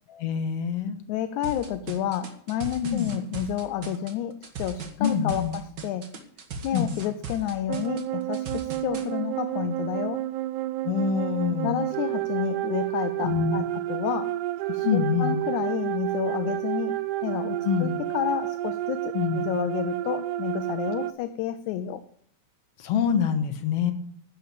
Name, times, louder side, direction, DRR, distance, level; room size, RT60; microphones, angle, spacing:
voice 1, 0.1-1.0 2.8-3.1 5.0-5.6 6.7-7.0 10.8-11.9 13.2-13.6 14.8-15.4 17.6-18.0 19.1-19.5 22.8-23.9, left 7 dB, 60° left, 2.0 m, -26 dB
voice 2, 1.1-6.1 6.6-10.3 11.6-14.4 14.7-22.0, left 10 dB, 80° left, 1.8 m, -30 dB
sound 1, 1.4-9.1, right 4 dB, 50° right, 1.4 m, -38 dB
sound 2, 7.7-21.1, right 15 dB, 80° right, 2.1 m, -30 dB
10.5 x 7.1 x 8.3 m
omnidirectional pair, 3.7 m